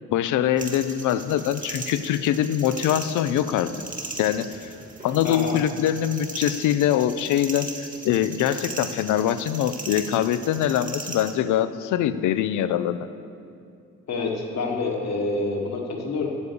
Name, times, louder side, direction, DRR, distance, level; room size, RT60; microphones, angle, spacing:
voice 1, 0.1-3.7 4.2-4.5 5.0-13.0, left 10 dB, 80° left, 13 dB, 0.5 m, -23 dB
sound 1, 0.6-11.3, right 3 dB, 25° right, 1.4 m, -38 dB
voice 2, 5.2-5.5 14.1-16.3, left 3 dB, 60° left, 1 dB, 1.5 m, -27 dB
8.5 x 7.0 x 6.9 m, 2.5 s
cardioid pair, 90°, 30 cm